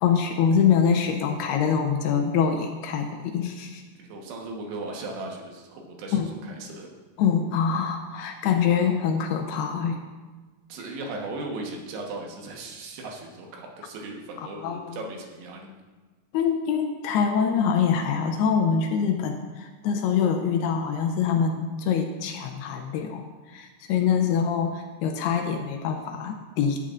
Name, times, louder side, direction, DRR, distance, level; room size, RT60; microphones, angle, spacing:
voice 1, 0.0-3.8 6.1-6.3 7.2-10.0 14.4-15.0 16.3-26.8, left 7 dB, 80° left, 4 dB, 2.5 m, -24 dB
voice 2, 4.0-6.9 10.7-15.7, right 2 dB, 75° right, 0 dB, 3.2 m, -37 dB
14.0 x 8.9 x 2.5 m, 1.3 s
omnidirectional pair, 5.0 m